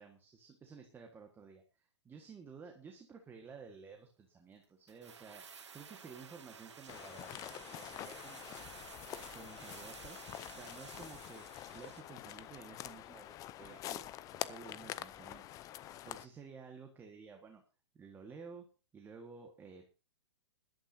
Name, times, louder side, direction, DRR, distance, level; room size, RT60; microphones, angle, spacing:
voice 1, 0.0-8.8 9.2-11.5 11.7-15.4 15.8-17.6 17.9-18.7 18.9-19.9, right 5 dB, 15° right, 3 dB, 1.7 m, -53 dB
sound 1, 4.9-12.2 12.4-12.5, right 6 dB, 75° right, 2.1 m, -53 dB
sound 2, 6.9-16.3, left 13 dB, 25° left, 0.6 m, -46 dB
20.5 x 12.0 x 2.8 m, 0.32 s
hypercardioid pair, 125°, 15 cm